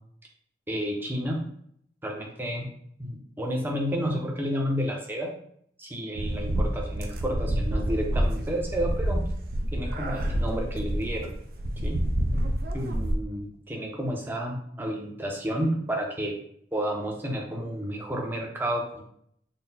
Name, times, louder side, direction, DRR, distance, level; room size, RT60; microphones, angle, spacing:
voice 1, 0.7-1.4 2.0-2.7 3.0-5.3 5.8-9.3 9.7-11.3 11.8-12.0 12.7-16.3 16.7-19.0, equal, 10° right, 0 dB, 0.6 m, -31 dB
sound 1, 6.2-13.2, right 1 dB, 55° right, 0.4 m, -28 dB
4.0 x 2.1 x 4.0 m, 0.66 s
head